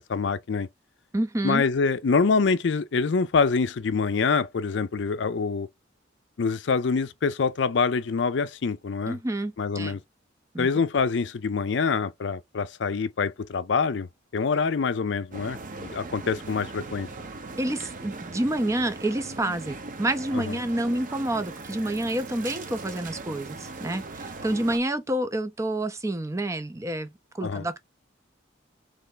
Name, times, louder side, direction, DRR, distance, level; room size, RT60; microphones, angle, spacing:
voice 1, 0.1-0.7 1.4-5.7 6.4-9.2 9.6-10.0 10.6-14.1 14.3-17.1 20.3-20.6 27.4-27.7, left 5 dB, 65° left, 0.4 m, -25 dB
voice 2, 1.1-1.6 9.1-10.0 10.5-10.9 17.6-27.8, right 1 dB, 15° right, 0.5 m, -28 dB
sound 1, 15.3-24.8, right 3 dB, 45° right, 0.8 m, -39 dB
3.3 x 3.2 x 3.8 m
head